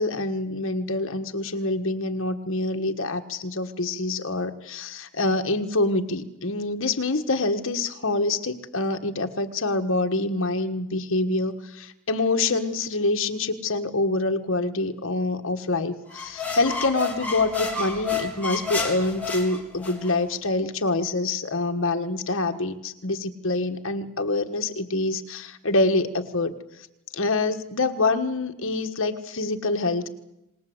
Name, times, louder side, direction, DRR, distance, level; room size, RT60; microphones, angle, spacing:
voice 1, 0.0-26.5 27.1-30.1, left 2 dB, 60° left, 6 dB, 1.5 m, -26 dB
sound 1, 16.1-20.2, left 4 dB, 5° left, 3.6 m, -30 dB
26.0 x 19.5 x 7.9 m, 0.90 s
head